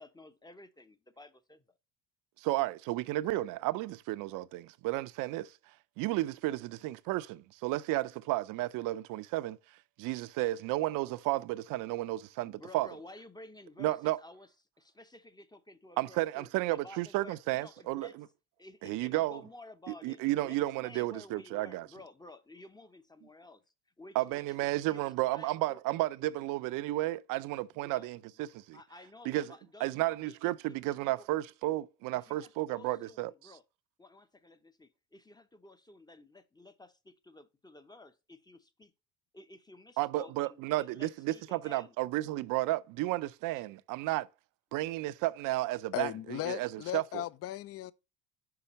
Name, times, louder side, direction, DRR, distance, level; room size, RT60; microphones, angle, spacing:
voice 1, 0.0-1.6 12.4-14.5 14.8-18.1 18.6-23.6 24.0-25.8 27.7-28.1 28.7-31.3 32.1-33.6 34.0-38.9 39.3-41.9 43.5-43.7, left 2 dB, 10° left, 0.7 m, -53 dB
voice 2, 2.4-5.5 6.0-9.6 10.0-12.9 13.8-14.2 16.0-18.1 18.8-19.4 19.9-21.9 24.1-28.8 29.3-29.5 29.8-33.3 40.0-44.3 44.7-47.2, right 17 dB, 60° right, 0.6 m, -33 dB
voice 3, 45.9-47.9, left 13 dB, 40° left, 0.5 m, -37 dB
5.8 x 4.8 x 4.1 m
supercardioid pair, 80°, 36 cm